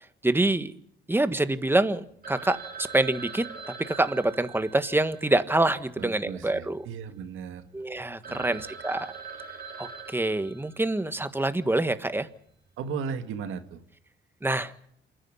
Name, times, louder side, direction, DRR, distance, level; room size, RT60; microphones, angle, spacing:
voice 1, 0.2-0.7 1.1-3.5 3.8-6.9 7.7-9.1 9.8-12.3 14.4-14.7, right 2 dB, 10° right, 11 dB, 1.4 m, -26 dB
Telephone, 2.2-6.6 6.8-6.9 7.5-7.6 7.9-8.0 8.2-11.2, right 5 dB, 50° right, 3.2 m, -43 dB
voice 2, 6.0-7.7 7.9-8.6 12.8-13.8, right 6 dB, 85° right, 8 dB, 2.0 m, -36 dB
28.0 x 10.0 x 9.9 m, 0.70 s
cardioid pair, 90°, 20 cm